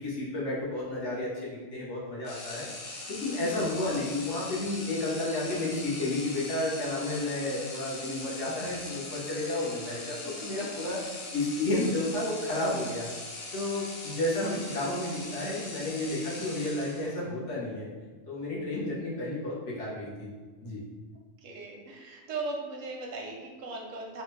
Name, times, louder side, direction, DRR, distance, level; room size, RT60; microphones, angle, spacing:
voice 1, 0.0-2.7 3.1-11.0 11.3-13.1 13.5-17.9 18.3-20.3 20.6-20.8, left 2 dB, 70° left, -6 dB, 1.2 m, -31 dB
sound 1, 2.2-17.3, left 2 dB, 55° left, 0.6 m, -41 dB
voice 2, 21.4-24.2, right 3 dB, 85° right, 0 dB, 1.0 m, -38 dB
3.4 x 2.1 x 3.1 m, 1.4 s
omnidirectional pair, 1.3 m